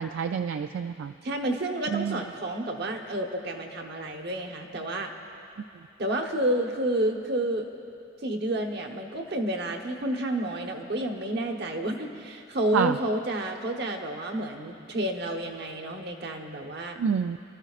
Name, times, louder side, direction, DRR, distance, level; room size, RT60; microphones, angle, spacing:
voice 1, 0.0-1.1 1.9-2.2 12.7-13.0 17.0-17.4, right 6 dB, 75° right, 7 dB, 0.3 m, -27 dB
voice 2, 1.2-5.1 6.0-7.7 8.2-17.0, right 1 dB, 55° right, 3 dB, 1.1 m, -30 dB
28.5 x 13.0 x 2.4 m, 2.6 s
head